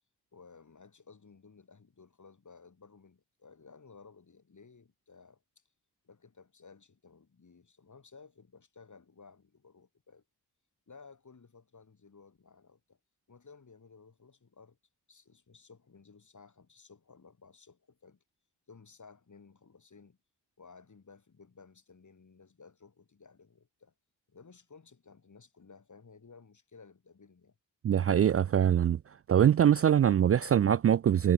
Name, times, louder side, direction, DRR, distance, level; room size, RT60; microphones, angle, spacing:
voice 1, 0.3-5.6 6.0-10.2 10.9-13.0 13.3-14.8 15.1-18.2 18.7-20.2 20.6-23.9 24.3-27.6, left 5 dB, 45° left, 7.1 m, -56 dB
voice 2, 27.8-29.0 29.3-31.3, right 9 dB, 35° right, 0.4 m, -23 dB
supercardioid pair, 50°, 40 cm